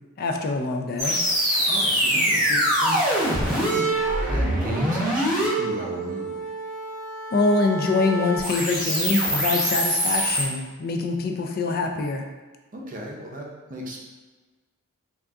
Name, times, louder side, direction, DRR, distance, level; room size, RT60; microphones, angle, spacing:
voice 1, 0.2-1.2 7.3-12.3, left 3 dB, 45° left, 3 dB, 0.4 m, -24 dB
sound 1, 1.0-10.4, equal, ahead, 0.9 m, -24 dB
voice 2, 1.7-3.9 4.2-6.4 12.7-14.1, right 1 dB, 40° right, -1 dB, 0.6 m, -35 dB
3.7 x 2.4 x 3.4 m, 1.3 s
head